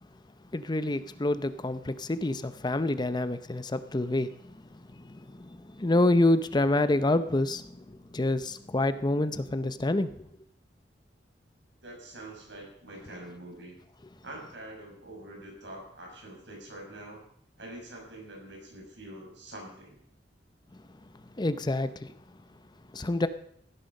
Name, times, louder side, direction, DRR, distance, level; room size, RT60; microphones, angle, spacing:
voice 1, 0.5-4.5 5.0-10.2 21.4-22.1 22.9-23.3, left 2 dB, 25° left, 0.7 m, -27 dB
voice 2, 11.8-13.8 14.2-17.2 17.6-20.0, right 1 dB, 90° right, 6.2 m, -45 dB
16.0 x 10.5 x 5.3 m
head